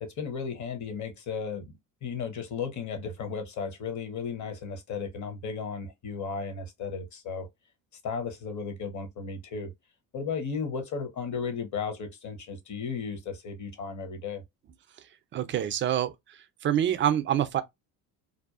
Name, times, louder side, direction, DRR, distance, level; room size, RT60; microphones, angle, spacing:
voice 1, 0.0-7.5 8.0-9.7 10.1-14.4, left 5 dB, 40° left, 1.0 m, -35 dB
voice 2, 15.3-16.1 16.6-17.6, right 10 dB, 25° right, 0.4 m, -26 dB
2.7 x 2.3 x 2.3 m
hypercardioid pair, 70°, 47 cm